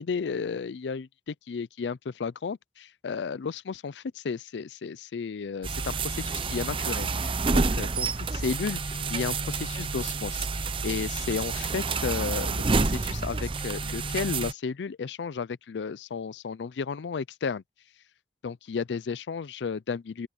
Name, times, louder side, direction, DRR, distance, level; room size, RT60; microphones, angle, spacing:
voice 1, 0.0-17.6 18.4-20.3, left 5 dB, 85° left, 0.4 m, -33 dB
sound 1, 5.6-14.5, right 3 dB, 30° right, 0.7 m, -29 dB
open air
head